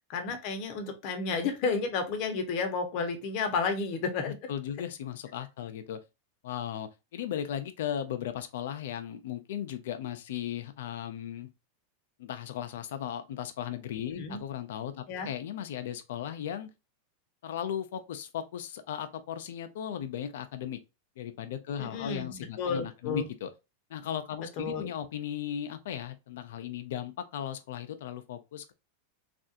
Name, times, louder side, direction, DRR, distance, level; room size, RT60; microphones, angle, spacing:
voice 1, 0.1-4.4 14.1-14.4 15.1-15.3 21.8-23.3 24.6-24.9, left 4 dB, 50° left, 0.9 m, -32 dB
voice 2, 4.3-6.0 6.4-11.5 12.2-16.7 17.4-20.8 21.2-23.5 23.9-28.7, left 9 dB, 75° left, 0.5 m, -36 dB
3.4 x 2.5 x 2.6 m
supercardioid pair, 130°, 0 cm